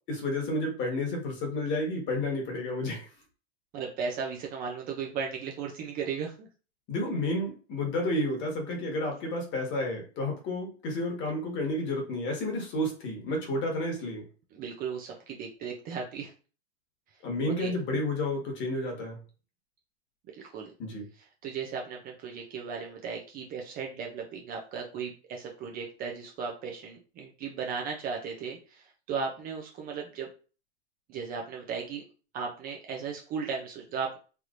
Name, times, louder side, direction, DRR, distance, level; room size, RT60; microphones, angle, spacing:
voice 1, 0.1-3.1 6.9-14.2 17.2-19.2 20.8-21.0, left 1 dB, 35° left, 1 dB, 1.4 m, -31 dB
voice 2, 3.7-6.5 14.5-16.3 17.5-17.7 20.4-20.7 21.2-30.3 31.1-32.0 32.3-34.2, right 6 dB, 25° right, 1 dB, 0.5 m, -36 dB
3.3 x 2.9 x 2.5 m, 0.36 s
supercardioid pair, 135°, 35 cm